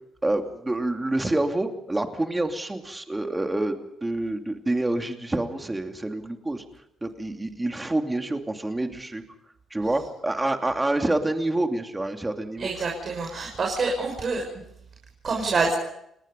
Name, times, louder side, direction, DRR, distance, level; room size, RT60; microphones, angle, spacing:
voice 1, 0.2-6.6 7.0-9.2 9.7-12.7, right 2 dB, 15° right, 5 dB, 2.7 m, -27 dB
voice 2, 12.6-14.4 15.2-15.7, right 4 dB, 45° right, 0 dB, 6.2 m, -26 dB
29.5 x 19.5 x 5.4 m, 0.78 s
cardioid pair, 90°, 0 cm